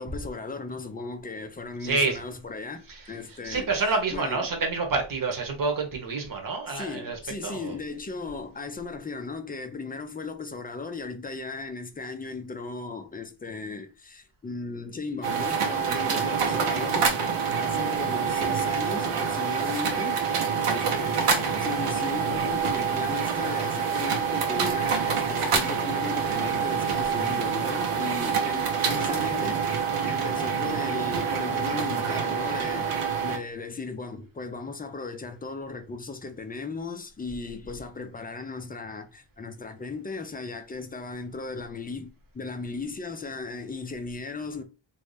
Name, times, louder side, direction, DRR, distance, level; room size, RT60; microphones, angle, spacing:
voice 1, 0.0-3.7 4.1-4.5 6.7-17.1 17.6-20.2 20.7-44.6, left 4 dB, 20° left, 0.4 m, -36 dB
voice 2, 1.8-2.2 2.9-3.1 3.4-7.8, right 3 dB, 40° right, 1.0 m, -28 dB
sound 1, 15.2-33.4, right 6 dB, 85° right, 1.0 m, -26 dB
3.1 x 2.6 x 3.2 m
wide cardioid pair, 120°, 50 cm